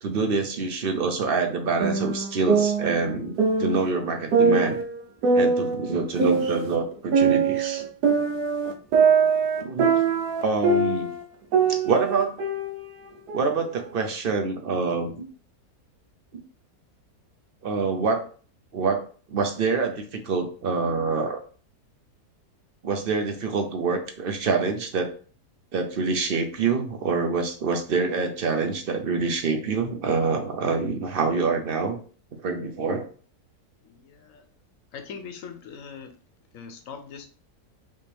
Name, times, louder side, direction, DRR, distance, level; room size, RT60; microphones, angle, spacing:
voice 1, 0.0-4.8 5.3-7.8 9.6-9.9 10.4-11.1 11.7-12.4 13.3-15.3 16.3-16.4 17.6-18.3 18.7-19.0 19.3-21.4 22.8-25.1 25.7-32.0 32.3-33.1, right 4 dB, 50° right, 5 dB, 0.7 m, -26 dB
sound 1, 1.8-3.9 4.3-6.8 7.1-11.2 11.5-13.5, right 5 dB, 85° right, 1.3 m, -22 dB
voice 2, 33.8-34.5 34.9-36.2 36.5-37.3, left 6 dB, 65° left, 6 dB, 1.0 m, -41 dB
5.4 x 2.9 x 3.3 m, 0.41 s
omnidirectional pair, 1.7 m